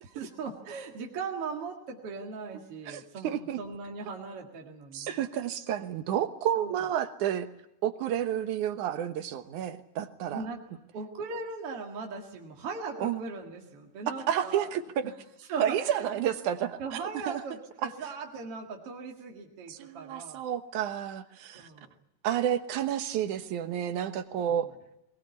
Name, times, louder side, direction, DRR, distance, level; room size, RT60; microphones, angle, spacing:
voice 1, 0.0-5.2 6.6-6.8 10.3-14.7 15.5-16.3 16.8-20.4 21.5-21.9 24.5-24.6, right 4 dB, 55° right, 0 dB, 2.9 m, -39 dB
voice 2, 2.9-3.6 4.9-7.5 7.8-10.4 13.0-13.2 14.3-15.1 15.6-17.0 17.3-17.4 17.8-17.9 19.7-21.7 22.2-24.7, right 10 dB, 90° right, 9 dB, 2.7 m, -30 dB
21.0 x 19.5 x 9.6 m, 0.85 s
omnidirectional pair, 3.4 m